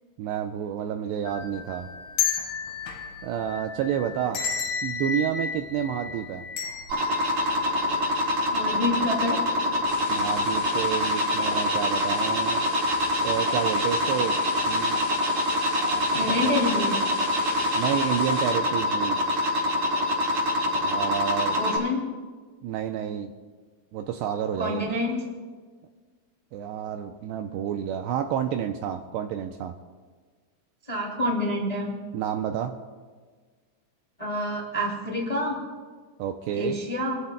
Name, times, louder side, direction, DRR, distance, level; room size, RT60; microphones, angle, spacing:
voice 1, 0.2-1.9 3.2-4.4 4.8-6.5 10.1-12.7 13.2-14.4 14.6-15.0 15.8-16.6 17.7-19.2 20.7-21.6 22.6-23.3 23.9-24.8 26.5-29.7 32.1-32.8 36.2-36.8, right 9 dB, 85° right, 5 dB, 2.5 m, -30 dB
sound 1, 1.3-8.4 8.8-8.9 9.8-10.1 10.5-10.6, left 6 dB, 85° left, 3.9 m, -33 dB
sound 2, 6.9-21.8, left 1 dB, 50° right, 5.6 m, -25 dB
voice 2, 8.5-9.4 16.1-17.0 21.5-22.0 24.6-25.2 30.9-31.9 34.2-35.6 36.6-37.2, left 1 dB, 10° left, -3 dB, 1.7 m, -27 dB
sound 3, 9.9-18.5, left 6 dB, 70° left, 3.2 m, -40 dB
26.5 x 14.5 x 2.2 m, 1.5 s
omnidirectional pair, 5.3 m